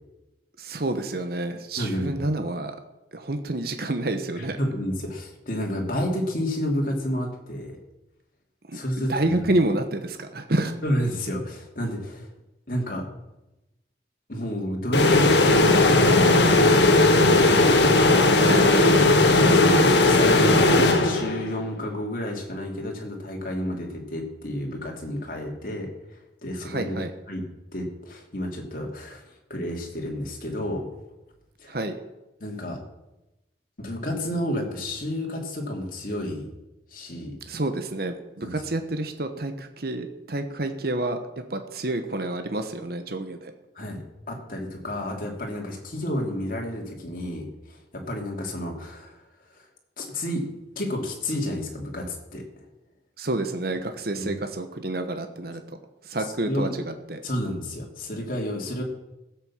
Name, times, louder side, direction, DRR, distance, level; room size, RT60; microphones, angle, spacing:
voice 1, 0.6-2.8 3.1-4.6 8.7-10.7 18.4-18.9 26.6-27.1 31.7-31.9 37.5-43.5 53.2-55.8 56.0-57.2, right 2 dB, 55° right, 7 dB, 1.1 m, -29 dB
voice 2, 1.8-2.2 4.4-7.8 8.7-9.3 10.8-12.3 12.7-13.0 14.3-15.3 15.6-17.8 19.5-27.0 27.3-27.4 27.7-30.9 31.6-31.8 32.4-32.8 33.8-36.5 36.9-37.4 38.4-38.5 43.7-49.2 49.5-49.7 50.0-50.5 50.7-52.4 54.1-54.3 56.5-56.8 57.2-58.8, left 1 dB, 50° left, 0 dB, 2.8 m, -31 dB
sound 1, 14.9-21.6, left 2 dB, 75° left, 1.5 m, -17 dB
15.5 x 8.1 x 7.2 m, 0.98 s
head